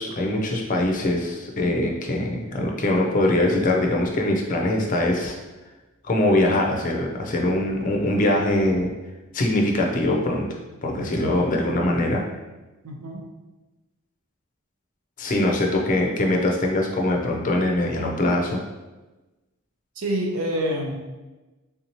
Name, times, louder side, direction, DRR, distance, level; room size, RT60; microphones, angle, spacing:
voice 1, 0.0-5.4 6.0-8.9 9.3-10.4 10.8-12.2 15.2-18.6, left 1 dB, 40° left, 1 dB, 0.5 m, -22 dB
voice 2, 12.8-13.2 20.0-21.0, equal, 85° right, 1 dB, 0.6 m, -26 dB
3.5 x 2.7 x 2.9 m, 1.1 s
head